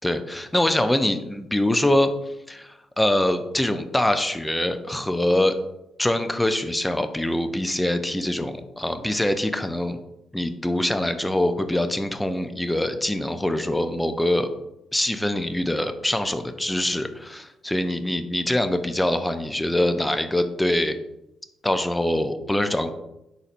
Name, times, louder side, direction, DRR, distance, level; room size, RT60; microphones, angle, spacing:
voice 1, 0.0-2.1 2.5-5.6 6.0-10.0 10.3-14.5 14.9-21.0 21.6-22.9, left 1 dB, 10° left, 8 dB, 0.4 m, -24 dB
4.1 x 4.1 x 2.5 m, 0.88 s
cardioid pair, 90°, 0 cm